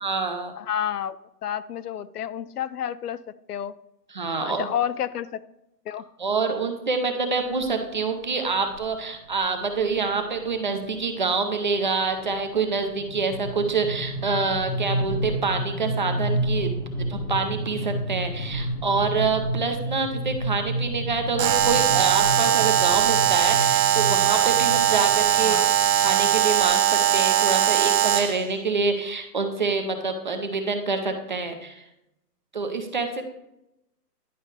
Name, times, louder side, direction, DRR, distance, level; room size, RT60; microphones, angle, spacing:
voice 1, 0.0-0.5 4.1-4.7 6.2-16.7 17.1-25.6 26.0-26.8 27.1-31.8 32.5-33.2, right 4 dB, 30° right, 5 dB, 0.6 m, -26 dB
voice 2, 0.6-3.2 3.5-3.7 4.4-5.4 5.9-6.0 25.4-25.7, left 10 dB, 70° left, 16 dB, 0.6 m, -30 dB
sound 1, 7.6-7.9 8.7-8.9 9.3-9.4 9.7-10.0 10.4-26.7, right 1 dB, 30° left, 0.8 m, -31 dB
Alarm, 21.4-28.4, right 11 dB, 75° right, 0.7 m, -20 dB
11.0 x 5.4 x 3.2 m, 0.84 s
hypercardioid pair, 165°, 49 cm